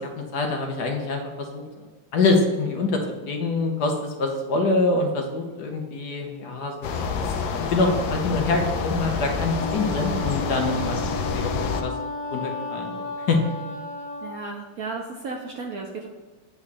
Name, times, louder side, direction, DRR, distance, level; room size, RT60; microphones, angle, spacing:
voice 1, 0.0-1.9 2.1-3.0 3.3-6.9 7.2-7.3 7.7-11.9 12.3-13.4, left 3 dB, 60° left, 2 dB, 1.4 m, -25 dB
sound 1, 6.8-11.8, left 5 dB, 80° left, 1.4 m, -28 dB
Wind instrument woodwind instrument, 9.6-14.4, left 2 dB, 30° left, 1.5 m, -33 dB
voice 2, 14.2-16.1, right 4 dB, 65° right, 2 dB, 0.9 m, -34 dB
8.4 x 3.2 x 6.5 m, 1.3 s
omnidirectional pair, 2.2 m